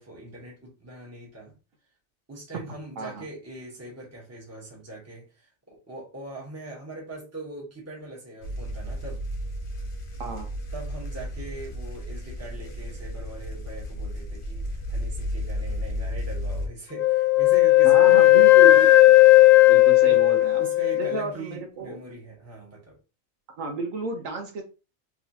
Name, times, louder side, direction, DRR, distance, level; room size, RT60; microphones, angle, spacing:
voice 1, 0.0-1.5 2.3-9.2 10.7-18.5 20.1-20.2 20.6-23.0, right 2 dB, 10° right, 1.1 m, -41 dB
sound 1, 8.4-16.7, equal, 45° left, 1.0 m, -33 dB
Wind instrument woodwind instrument, 17.0-21.2, left 17 dB, 80° left, 1.0 m, -15 dB
voice 2, 17.8-18.9 19.6-20.6 20.9-22.0 23.6-24.6, right 3 dB, 75° right, 1.1 m, -32 dB
3.5 x 3.0 x 2.7 m
omnidirectional pair, 1.4 m